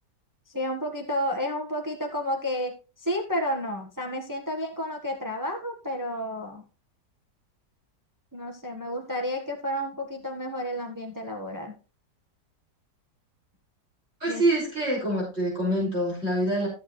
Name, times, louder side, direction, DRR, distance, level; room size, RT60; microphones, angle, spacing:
voice 1, 0.5-6.6 8.3-11.7 14.3-14.4, equal, 10° right, 2 dB, 1.3 m, -31 dB
voice 2, 14.2-16.7, right 1 dB, 35° right, -5 dB, 6.2 m, -25 dB
14.0 x 7.8 x 3.2 m, 0.32 s
omnidirectional pair, 1.8 m